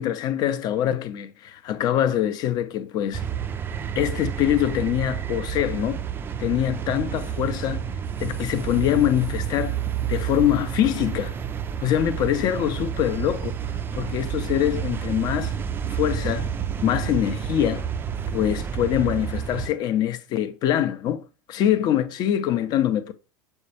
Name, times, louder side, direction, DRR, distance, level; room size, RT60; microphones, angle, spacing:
voice 1, 0.0-3.2 4.0-6.0 6.4-7.8 8.2-9.8 10.1-11.4 11.8-13.6 13.9-15.5 15.9-16.5 16.8-17.9 18.3-23.1, left 11 dB, 35° left, 0.5 m, -24 dB
sound 1, 3.1-19.7, right 8 dB, 20° right, 0.3 m, -30 dB
6.3 x 2.2 x 2.8 m
figure-of-eight pair, 80°, 11 cm